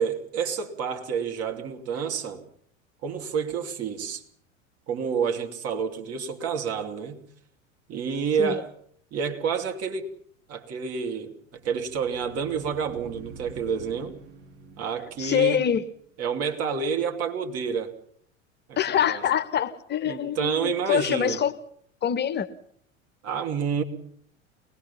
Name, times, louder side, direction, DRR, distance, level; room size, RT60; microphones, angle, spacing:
voice 1, 0.0-2.4 3.0-4.2 4.9-7.2 7.9-8.7 9.1-10.1 10.5-14.1 14.8-15.7 16.2-17.9 18.7-19.2 20.1-21.4 23.2-23.8, right 6 dB, 40° right, 2.9 m, -29 dB
sound 1, 11.6-16.2, right 4 dB, 55° right, 6.3 m, -47 dB
voice 2, 15.2-15.8 18.8-21.5 22.0-22.5, left 9 dB, 25° left, 0.9 m, -25 dB
24.0 x 20.0 x 5.7 m
figure-of-eight pair, 80°, 39 cm